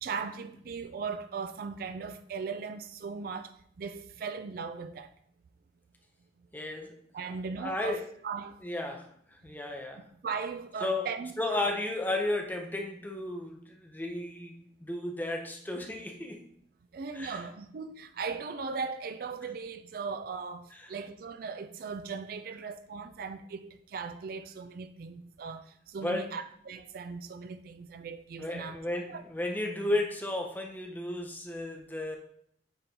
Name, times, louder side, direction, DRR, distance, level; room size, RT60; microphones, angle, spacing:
voice 1, 0.0-5.1 7.1-8.6 9.9-11.7 16.9-28.8 29.1-29.2, right 5 dB, 55° right, 0.4 m, -38 dB
voice 2, 6.5-7.0 7.6-8.1 8.6-10.0 10.8-11.1 11.4-14.6 14.9-16.5 17.1-17.4 26.0-26.3 28.4-32.2, left 2 dB, 10° left, 0.7 m, -33 dB
9.0 x 3.7 x 2.8 m
head